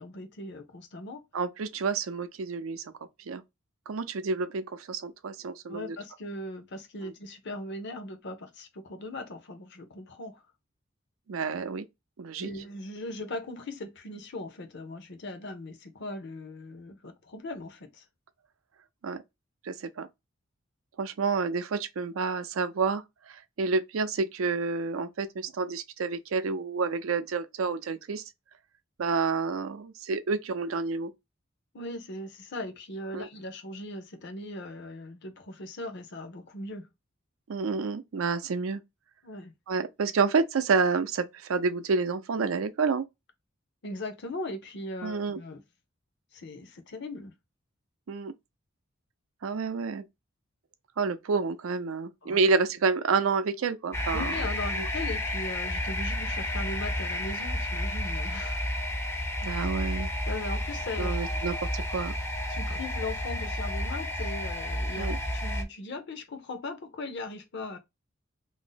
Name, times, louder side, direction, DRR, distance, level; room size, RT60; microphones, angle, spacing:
voice 1, 0.0-1.2 5.7-10.4 12.4-18.0 31.7-36.9 39.2-39.5 43.8-45.6 46.3-47.3 52.2-52.4 54.1-58.7 60.3-61.4 62.5-67.8, left 2 dB, 60° left, 0.7 m, -39 dB
voice 2, 1.3-2.9 3.3-3.4 3.9-6.0 7.0-7.1 11.3-11.9 12.2-12.5 19.0-19.2 19.6-20.1 21.0-28.2 29.0-31.1 33.1-33.3 37.5-38.8 39.7-43.0 45.0-45.4 48.1-48.3 49.4-50.0 51.0-54.3 54.8-54.9 59.4-60.1 61.0-62.1 65.0-65.2, right 4 dB, 85° right, 0.5 m, -29 dB
sound 1, 53.9-65.6, left 1 dB, 15° left, 0.5 m, -31 dB
2.6 x 2.0 x 3.8 m
head